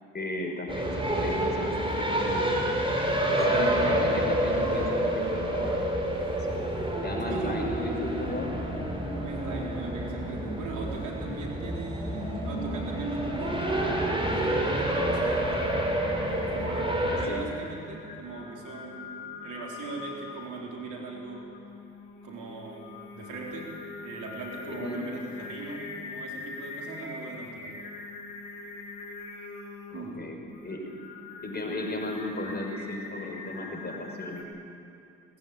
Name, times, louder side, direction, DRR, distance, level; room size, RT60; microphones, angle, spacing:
voice 1, 0.1-2.8 3.3-5.9 6.3-6.4 7.0-8.5 17.0-17.4 24.7-25.0 29.9-30.8 31.4-34.5, left 2 dB, 35° left, 2 dB, 5.8 m, -35 dB
sound 1, 0.7-17.3, right 1 dB, 15° right, 5.7 m, -28 dB
voice 2, 7.3-7.8 9.2-15.8 16.4-21.5 22.2-23.8 24.0-27.7 29.9-30.4, right 3 dB, 75° right, -1 dB, 4.3 m, -39 dB
Singing, 15.5-34.4, left 3 dB, 75° left, 3.5 m, -43 dB
19.0 x 15.5 x 9.2 m, 2.7 s
hypercardioid pair, 50°, 30 cm